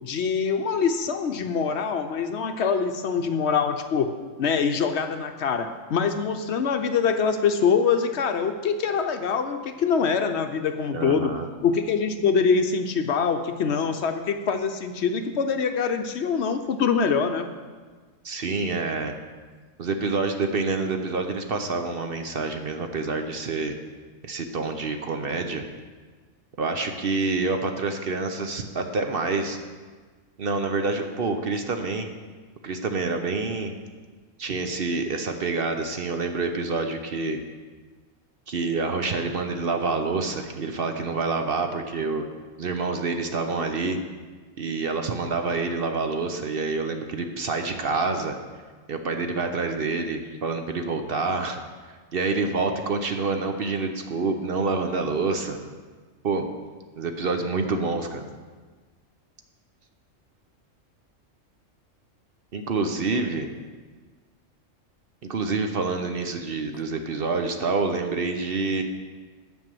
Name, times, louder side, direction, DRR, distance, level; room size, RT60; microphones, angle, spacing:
voice 1, 0.0-11.3 11.6-17.5, left 6 dB, 65° left, 7 dB, 0.9 m, -24 dB
voice 2, 10.9-11.5 18.2-19.1 19.8-23.8 24.2-25.6 26.6-29.6 30.4-32.1 32.6-33.7 34.4-37.4 38.5-42.2 42.6-44.0 44.6-48.4 48.9-51.6 51.9-55.6 56.2-56.5 57.0-58.3 62.5-63.5 65.3-68.8, right 3 dB, 50° right, 6 dB, 0.9 m, -27 dB
10.5 x 5.4 x 7.6 m, 1.4 s
omnidirectional pair, 1.4 m